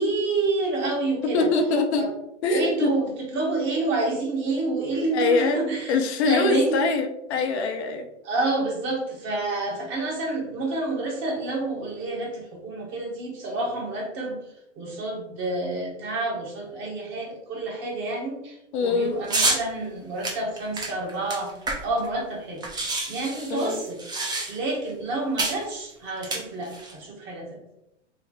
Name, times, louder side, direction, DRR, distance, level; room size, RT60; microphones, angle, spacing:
voice 1, 0.0-1.5 1.9-2.1 2.5-6.8 8.2-14.4 14.8-21.6 21.8-22.6 23.1-24.0 24.5-27.6, right 2 dB, 35° right, 0 dB, 1.1 m, -28 dB
voice 2, 1.3-2.1 2.4-2.9 5.1-5.6 5.9-8.1 18.7-19.2 23.5-23.8, left 3 dB, 65° left, 5 dB, 0.7 m, -23 dB
sound 1, 19.3-19.6 20.2-22.1 22.3-22.4 22.6-24.8 25.4-25.6 26.2-26.9, right 2 dB, 10° right, 0.5 m, -28 dB
3.2 x 2.1 x 4.0 m, 0.82 s
hypercardioid pair, 115°, 36 cm